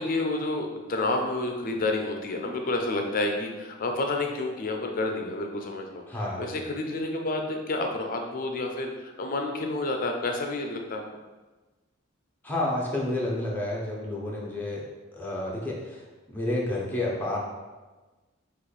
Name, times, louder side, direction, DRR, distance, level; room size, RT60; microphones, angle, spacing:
voice 1, 0.0-6.0 6.4-11.0, left 2 dB, 45° left, 3 dB, 0.6 m, -29 dB
voice 2, 6.1-6.5 12.4-14.8 15.1-16.0 16.3-17.4, left 1 dB, 10° left, -4 dB, 0.8 m, -30 dB
6.2 x 2.5 x 3.3 m, 1.2 s
head